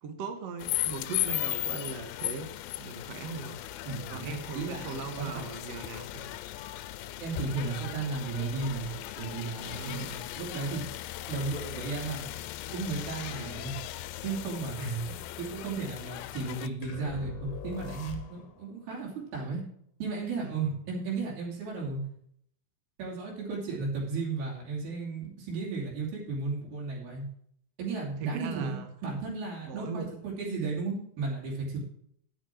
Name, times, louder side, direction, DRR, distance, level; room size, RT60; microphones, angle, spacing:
voice 1, 0.0-2.5 2.8-3.6 4.1-6.1 9.6-10.3 13.3-13.7 20.4-20.8 28.2-28.9 29.7-30.1, right 4 dB, 60° right, 6 dB, 1.9 m, -39 dB
sound 1, 0.6-16.7, left 16 dB, 80° left, 2.2 m, -37 dB
sound 2, 3.6-9.4, left 5 dB, 30° left, 1.4 m, -52 dB
voice 2, 3.9-5.4 6.1-6.2 7.2-8.9 9.2-10.1 10.4-10.8 11.3-12.3 12.7-13.7 14.2-19.6 20.0-22.0 23.0-27.2 27.8-28.8 29.0-31.8, right 4 dB, 80° right, -4 dB, 5.0 m, -34 dB
sound 3, 16.8-18.7, left 8 dB, 60° left, 1.8 m, -42 dB
10.5 x 9.0 x 4.5 m, 0.67 s
omnidirectional pair, 4.4 m